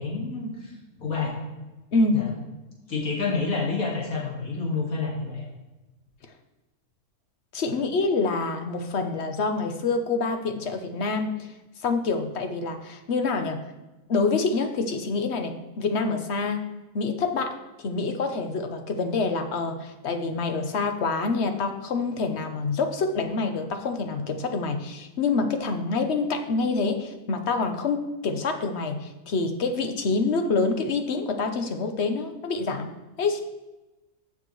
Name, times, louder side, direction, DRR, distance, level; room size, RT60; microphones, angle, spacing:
voice 1, 0.0-1.4 2.1-2.3 2.9-5.4, left 4 dB, 65° left, -4 dB, 2.5 m, -29 dB
voice 2, 1.9-2.3 7.5-11.4 11.8-13.6 14.1-32.9 33.2-33.4, left 3 dB, 50° left, 7 dB, 1.0 m, -26 dB
14.0 x 6.0 x 3.2 m, 1.1 s
omnidirectional pair, 1.6 m